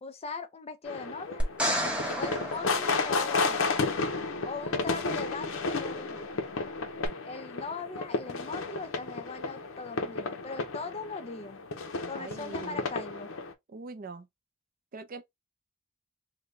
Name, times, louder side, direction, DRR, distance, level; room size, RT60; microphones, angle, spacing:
voice 1, 0.0-1.4 2.2-3.8 4.4-6.4 7.2-11.6 12.1-13.3, left 4 dB, 30° left, 0.5 m, -40 dB
sound 1, 0.8-13.5, left 3 dB, 80° left, 0.7 m, -32 dB
sound 2, 1.4-3.7 7.0-7.1, equal, 5° right, 0.9 m, -32 dB
voice 2, 12.1-12.9 13.7-14.3 14.9-15.2, right 3 dB, 45° right, 0.5 m, -43 dB
3.9 x 2.2 x 3.2 m
head